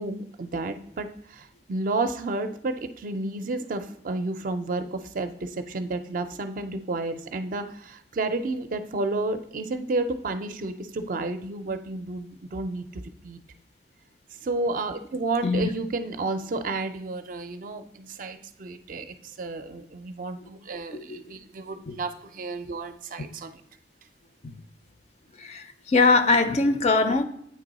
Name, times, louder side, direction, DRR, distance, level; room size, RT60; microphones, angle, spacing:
voice 1, 0.0-13.4 14.4-23.5, right 2 dB, 50° right, 8 dB, 0.4 m, -31 dB
voice 2, 25.4-27.2, left 3 dB, 35° left, 10 dB, 0.4 m, -22 dB
8.5 x 3.0 x 4.0 m, 0.68 s
head